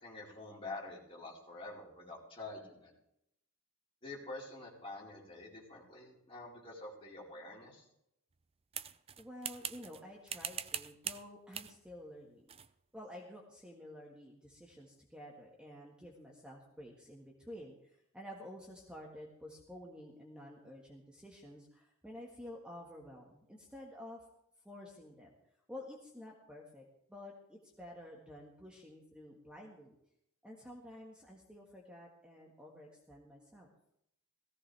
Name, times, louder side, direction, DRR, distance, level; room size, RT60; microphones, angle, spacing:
voice 1, 0.0-2.9 4.0-7.8, left 2 dB, 25° left, -5 dB, 4.6 m, -47 dB
sound 1, 8.7-10.0 10.3-11.2 11.5-11.8 12.5-12.7, right 8 dB, 25° right, 0.5 m, -42 dB
voice 2, 9.2-12.5 12.9-24.2 24.6-25.3 25.7-30.0 30.4-33.7, left 1 dB, 5° right, -2 dB, 1.7 m, -51 dB
17.5 x 16.0 x 3.5 m, 0.78 s
head